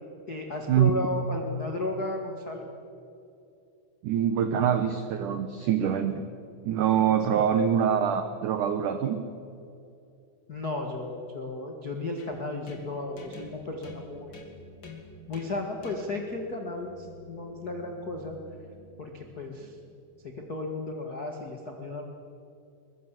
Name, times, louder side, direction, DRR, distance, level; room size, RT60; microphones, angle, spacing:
voice 1, 0.3-2.7 7.3-7.4 10.5-14.4 15.3-18.4 19.0-19.7 20.2-22.0, left 2 dB, 70° left, 2 dB, 0.9 m, -34 dB
voice 2, 4.0-6.2 6.6-9.2, right 9 dB, 90° right, 9 dB, 1.7 m, -24 dB
sound 1, 12.2-19.9, left 2 dB, 30° left, 2.6 m, -48 dB
22.5 x 22.0 x 7.5 m, 2.6 s
omnidirectional pair, 5.1 m